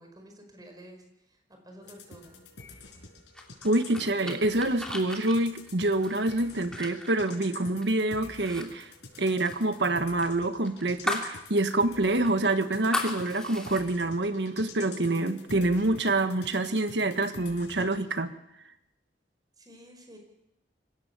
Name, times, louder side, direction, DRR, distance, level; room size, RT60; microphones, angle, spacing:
voice 1, 0.0-1.4 1.6-2.4 19.6-20.2, equal, 25° right, 4 dB, 5.2 m, -50 dB
sound 1, 1.8-18.0, left 3 dB, 85° left, 5.6 m, -48 dB
sound 2, 3.3-8.0 8.3-8.7 8.9-11.4 11.7-11.8 12.2-13.8, left 1 dB, 5° left, 3.1 m, -36 dB
voice 2, 3.6-8.9 9.2-18.3, right 2 dB, 75° right, 9 dB, 1.4 m, -26 dB
26.0 x 16.5 x 7.1 m, 0.85 s
head